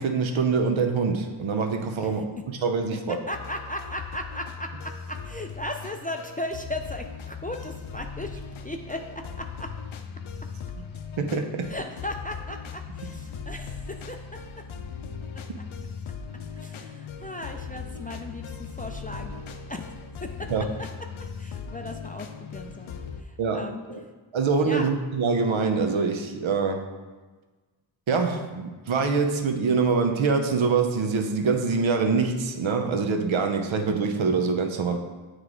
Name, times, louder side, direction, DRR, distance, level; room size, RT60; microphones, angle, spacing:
voice 1, 0.0-3.2 11.2-11.7 20.5-20.6 23.4-24.0 24.3-26.9 28.1-35.0, right 4 dB, 70° right, 5 dB, 0.8 m, -25 dB
voice 2, 2.0-2.4 3.1-9.7 11.7-14.6 15.3-15.6 16.5-19.4 19.7-19.9 20.2-20.5 21.4-23.8 24.7-24.9, left 1 dB, 20° left, 3 dB, 0.3 m, -37 dB
sound 1, 3.3-23.2, left 6 dB, 70° left, 0.6 m, -39 dB
7.9 x 3.2 x 3.8 m, 1.3 s
cardioid pair, 65°, 49 cm